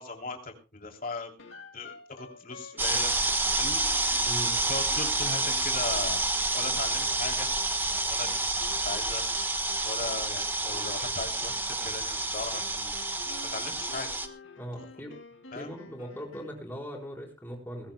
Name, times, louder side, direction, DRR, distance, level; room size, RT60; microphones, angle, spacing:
voice 1, 0.0-1.4 1.7-3.3 3.5-3.8 4.7-6.2 6.5-7.5 8.1-9.2 9.8-14.1 15.5-15.7, left 3 dB, 45° left, 2 dB, 3.1 m, -38 dB
sound 1, 1.4-16.7, left 4 dB, 75° left, 2.1 m, -50 dB
sound 2, 2.8-14.3, right 2 dB, 10° right, 1.3 m, -29 dB
voice 2, 4.3-4.6 14.6-15.1 15.5-17.9, equal, 10° left, 0 dB, 4.3 m, -39 dB
21.0 x 17.0 x 2.2 m, 0.31 s
head